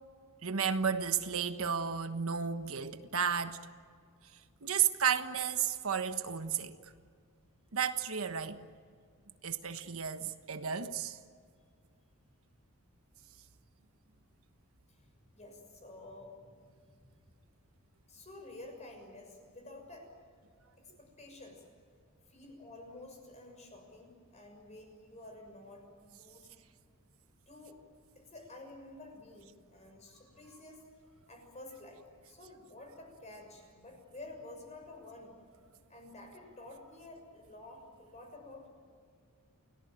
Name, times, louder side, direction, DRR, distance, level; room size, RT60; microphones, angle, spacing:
voice 1, 0.4-3.6 4.6-6.7 7.7-8.6 9.4-11.2, right 7 dB, 75° right, 1.3 m, -32 dB
voice 2, 15.3-16.7 18.1-20.1 20.8-21.6 22.3-26.5 27.5-27.8 28.1-30.8 31.3-35.4 35.9-38.7, left 2 dB, 30° left, 6.5 m, -51 dB
29.5 x 18.0 x 9.2 m
head